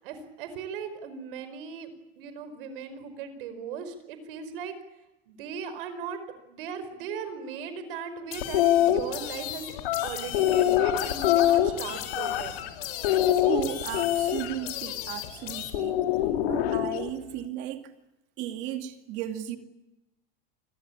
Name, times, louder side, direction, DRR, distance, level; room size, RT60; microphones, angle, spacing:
voice 1, 0.0-1.9 2.2-4.8 5.3-9.7 10.0-12.6, right 6 dB, 65° right, 5.0 m, -38 dB
sound 1, 8.3-15.7, left 12 dB, 65° left, 4.6 m, -38 dB
sound 2, 8.4-9.0 9.8-12.7 13.0-14.5 15.7-17.1, left 12 dB, 85° left, 3.2 m, -24 dB
voice 2, 13.5-16.0 16.5-17.9 18.4-19.6, right 11 dB, 40° right, 2.4 m, -35 dB
28.0 x 21.5 x 8.7 m
supercardioid pair, 175°, 29 cm